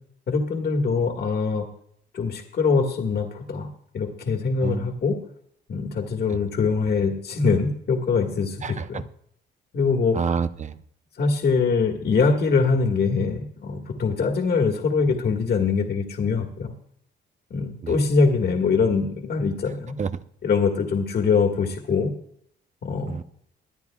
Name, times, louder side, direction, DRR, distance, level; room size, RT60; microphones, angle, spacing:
voice 1, 0.3-1.7 2.1-3.7 3.9-5.2 5.7-9.1 9.7-10.2 11.2-16.7 17.5-19.9 20.4-22.1 22.8-23.2, left 4 dB, 55° left, 2 dB, 1.7 m, -23 dB
voice 2, 8.6-9.0 10.1-10.7 17.8-17.9 20.0-20.1 23.1-23.2, right 6 dB, 35° right, 12 dB, 0.7 m, -28 dB
22.5 x 9.6 x 2.4 m, 0.65 s
cardioid pair, 90°, 20 cm